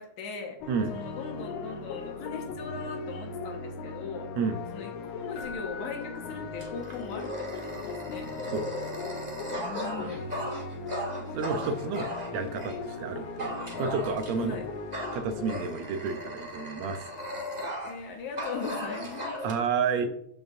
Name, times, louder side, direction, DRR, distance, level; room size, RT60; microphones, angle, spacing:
voice 1, 0.0-4.3 4.7-8.3 9.6-10.3 14.4-14.7 17.9-19.4, left 5 dB, 90° left, 1 dB, 2.7 m, -39 dB
sound 1, 0.6-15.6, left 3 dB, 70° left, 1.6 m, -39 dB
Keyboard (musical), 5.3-7.3 10.6-10.7, left 4 dB, 45° left, 3.1 m, -45 dB
Dog, 6.6-12.8 13.4-14.5 14.9-18.1 18.4-19.5, equal, 25° right, 1.0 m, -37 dB
voice 2, 11.3-14.6 15.1-17.1 19.4-20.1, right 5 dB, 75° right, 7 dB, 1.9 m, -31 dB
13.0 x 5.6 x 2.6 m, 0.71 s
omnidirectional pair, 3.3 m